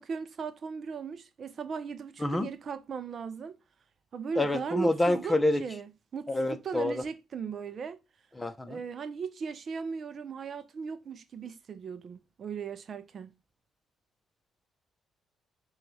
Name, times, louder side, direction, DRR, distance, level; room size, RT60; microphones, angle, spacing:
voice 1, 0.0-3.6 4.1-8.0 8.7-13.3, right 6 dB, 50° right, 0.4 m, -37 dB
voice 2, 4.4-5.6 6.3-6.9 8.4-8.8, left 1 dB, 15° left, 0.8 m, -27 dB
6.7 x 2.4 x 3.3 m
cardioid pair, 90°, 0 cm